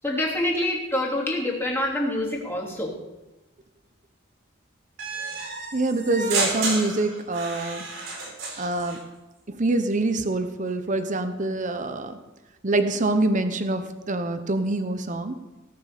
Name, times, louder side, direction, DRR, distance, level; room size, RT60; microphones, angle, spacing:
voice 1, 0.0-2.9, left 1 dB, 15° left, -4 dB, 3.2 m, -26 dB
sound 1, 5.0-9.0, right 3 dB, 75° right, 4.9 m, -31 dB
voice 2, 5.7-7.8 8.6-9.0 9.5-12.2 12.6-15.4, right 2 dB, 40° right, 9 dB, 1.0 m, -25 dB
18.5 x 6.8 x 6.8 m, 1.1 s
head